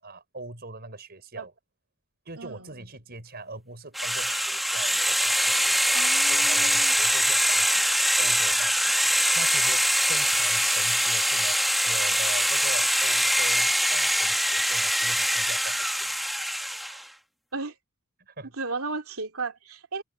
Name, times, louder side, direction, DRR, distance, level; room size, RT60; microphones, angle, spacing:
voice 1, 0.0-1.5 2.3-6.0 6.3-7.9 8.2-16.2 16.9-17.0 18.2-18.5, right 3 dB, 45° right, 6.0 m, -41 dB
voice 2, 2.4-2.7 5.9-6.9 17.5-17.7 18.6-20.0, right 4 dB, 70° right, 3.0 m, -34 dB
sound 1, 3.9-17.0, equal, ahead, 1.1 m, -23 dB
head